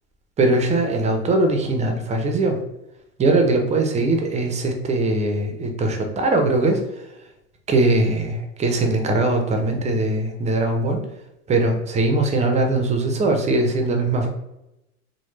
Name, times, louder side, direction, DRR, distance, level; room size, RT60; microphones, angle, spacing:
voice 1, 0.4-2.6 3.2-6.8 7.7-11.1 11.5-14.3, right 2 dB, 20° right, 4 dB, 0.4 m, -21 dB
3.1 x 2.1 x 3.1 m, 0.90 s
supercardioid pair, 120°, 37 cm